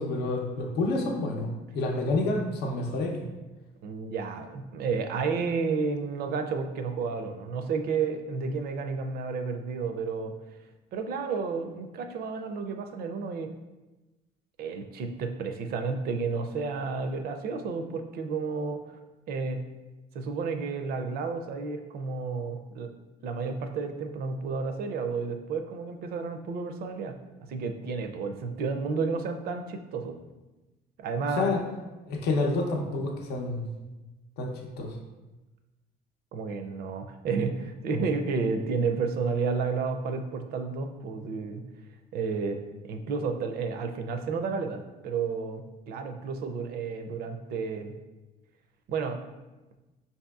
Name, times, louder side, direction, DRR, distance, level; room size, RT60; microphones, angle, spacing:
voice 1, 0.0-3.2 31.4-31.6 32.1-33.7 34.4-34.9, left 2 dB, 75° left, 2 dB, 0.6 m, -29 dB
voice 2, 3.8-10.3 10.9-13.5 14.6-18.8 19.3-19.6 20.1-22.9 23.2-30.2 31.0-31.5 36.3-41.6 42.1-47.9 48.9-49.2, right 4 dB, 65° right, 6 dB, 0.5 m, -31 dB
5.5 x 2.7 x 2.3 m, 1.1 s
cardioid pair, 110°, 17 cm